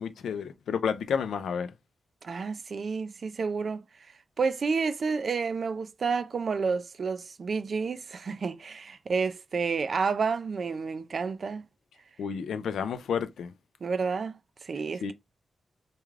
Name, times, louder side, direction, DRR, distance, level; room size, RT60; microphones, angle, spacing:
voice 1, 0.0-1.7 12.2-13.5 15.0-15.1, left 7 dB, 90° left, 0.4 m, -31 dB
voice 2, 2.2-3.8 4.4-11.6 13.8-15.1, right 5 dB, 55° right, 0.4 m, -30 dB
2.3 x 2.3 x 3.2 m
cardioid pair, 75°, 0 cm